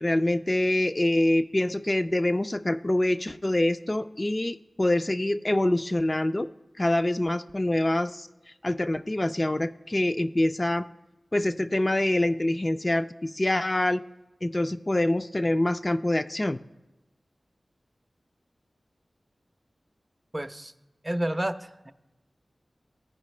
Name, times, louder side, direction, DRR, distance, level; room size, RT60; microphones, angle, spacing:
voice 1, 0.0-6.5 6.8-10.9 11.3-14.0 14.4-16.6, left 1 dB, 30° left, 8 dB, 0.3 m, -25 dB
voice 2, 20.3-20.7 21.0-21.6 21.9-22.0, right 1 dB, 25° right, 9 dB, 0.5 m, -29 dB
15.0 x 5.0 x 3.2 m, 1.0 s
wide cardioid pair, 60°, 0 cm